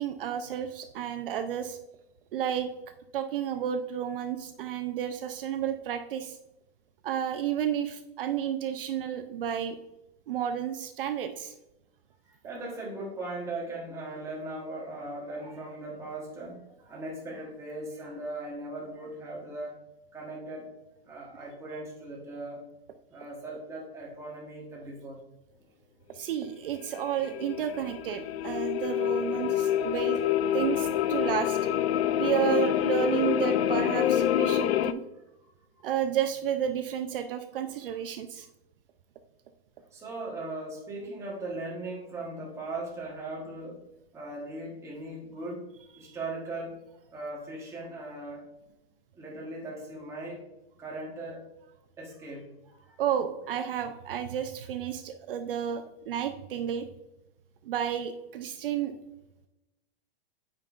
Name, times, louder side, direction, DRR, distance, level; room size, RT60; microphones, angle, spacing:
voice 1, 0.0-1.8 2.3-2.7 3.1-6.4 7.0-9.8 10.3-11.5 26.1-30.2 30.5-31.7 32.1-35.0 35.8-38.5 46.1-46.2 53.0-56.9 57.6-58.9, right 9 dB, 60° right, 8 dB, 0.5 m, -31 dB
voice 2, 12.2-19.8 20.1-20.7 21.0-22.6 23.1-25.3 35.4-35.5 35.8-35.9 39.9-43.8 44.1-46.8 47.1-48.5 49.1-50.4 50.8-51.5 52.0-53.0, right 2 dB, 10° right, -3 dB, 1.1 m, -39 dB
sound 1, 26.8-34.9, left 10 dB, 80° left, 0.5 m, -27 dB
8.9 x 5.3 x 2.4 m, 0.95 s
supercardioid pair, 165°, 32 cm